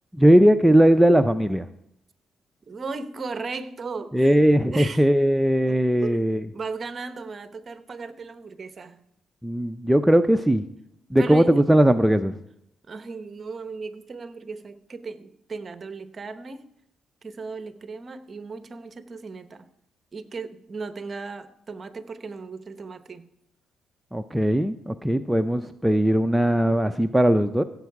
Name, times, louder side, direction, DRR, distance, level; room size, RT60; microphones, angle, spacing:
voice 1, 0.1-1.7 4.1-6.4 9.4-10.6 11.1-12.4 24.1-27.6, right 1 dB, 5° right, 7 dB, 0.5 m, -19 dB
voice 2, 2.7-4.3 4.7-5.0 5.7-6.3 6.5-9.0 11.2-11.5 12.9-16.6 17.2-19.7 20.1-23.3, right 4 dB, 40° right, 10 dB, 1.0 m, -36 dB
15.5 x 7.9 x 4.8 m, 0.77 s
cardioid pair, 90°, 0 cm